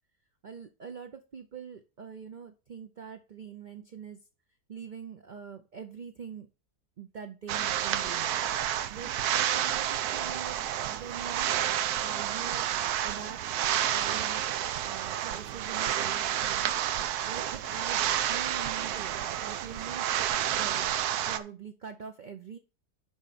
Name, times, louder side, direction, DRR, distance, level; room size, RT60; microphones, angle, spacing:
voice 1, 0.4-4.2 4.7-6.5 7.0-8.4 8.9-11.6 12.0-12.7 13.0-13.4 13.9-14.5 14.8-16.7 17.3-20.1 20.5-22.6, right 7 dB, 50° right, 6 dB, 0.5 m, -44 dB
sound 1, 7.5-21.4, right 11 dB, 85° right, 1.2 m, -30 dB
6.2 x 5.2 x 6.7 m, 0.32 s
omnidirectional pair, 1.6 m